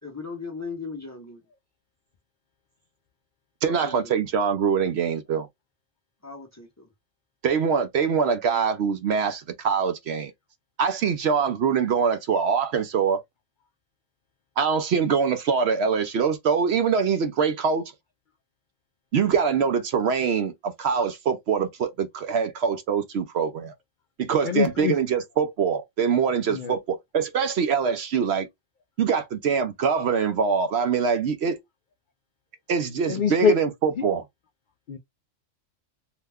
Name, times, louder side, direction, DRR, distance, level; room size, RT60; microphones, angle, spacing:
voice 1, 0.0-1.4 3.6-4.1 6.2-6.9, left 4 dB, 15° left, 0.6 m, -38 dB
voice 2, 3.6-5.5 7.4-10.3 10.8-13.2 14.6-17.9 19.1-23.7 24.2-28.5 29.0-31.6 32.7-34.2, right 6 dB, 65° right, 0.8 m, -24 dB
voice 3, 24.4-24.9 26.5-26.7 33.1-33.6 34.9-35.0, left 5 dB, 65° left, 0.5 m, -23 dB
2.8 x 2.1 x 3.4 m
omnidirectional pair, 1.3 m